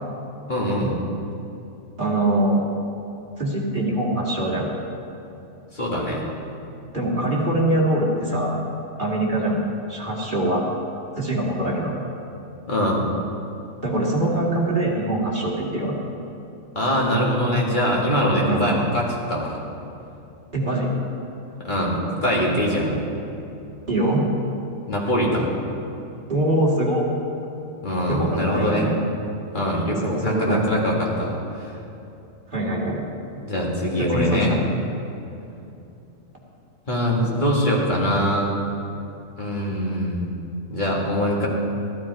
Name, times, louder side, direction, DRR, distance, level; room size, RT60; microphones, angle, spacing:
voice 1, 0.5-1.0 5.7-6.2 12.7-13.0 16.8-19.6 21.6-23.0 24.9-25.5 27.8-28.9 29.5-31.7 33.4-34.5 36.9-38.5 39.4-40.3 40.7-41.5, equal, 35° left, -3 dB, 2.2 m, -23 dB
voice 2, 2.0-2.6 3.4-4.7 6.9-8.6 9.0-9.6 9.9-10.6 11.2-11.9 13.8-15.9 18.4-18.6 20.5-20.9 23.9-24.3 26.3-27.0 28.1-28.9 30.0-30.6 32.5-33.0 34.0-34.7, right 1 dB, 35° right, -4 dB, 2.3 m, -23 dB
14.0 x 12.5 x 4.7 m, 2.8 s
omnidirectional pair, 1.4 m